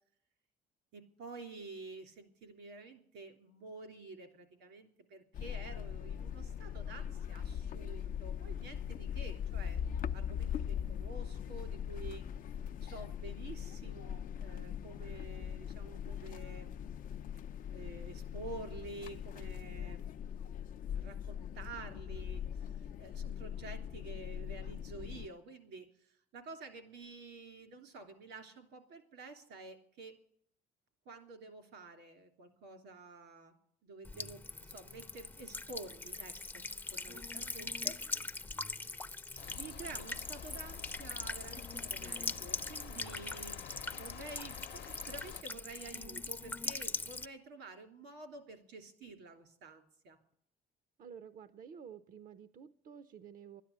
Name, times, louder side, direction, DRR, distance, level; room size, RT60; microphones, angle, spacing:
voice 1, 0.9-9.8 10.1-12.2 12.8-16.7 17.7-20.2 20.9-30.1 31.0-33.5 33.8-38.0 39.5-50.2, right 3 dB, 85° right, 7 dB, 3.2 m, -50 dB
sound 1, 5.3-25.3, left 8 dB, 55° left, 0.5 m, -41 dB
Buzz / Water tap faucet / Trickle dribble, 34.0-47.3, left 3 dB, 10° left, 0.6 m, -42 dB
sound 2, 39.4-45.4, left 9 dB, 70° left, 0.9 m, -49 dB
voice 2, 51.0-53.6, right 7 dB, 55° right, 13 dB, 0.7 m, -51 dB
12.5 x 10.0 x 9.8 m, 0.67 s
cardioid pair, 110°, 17 cm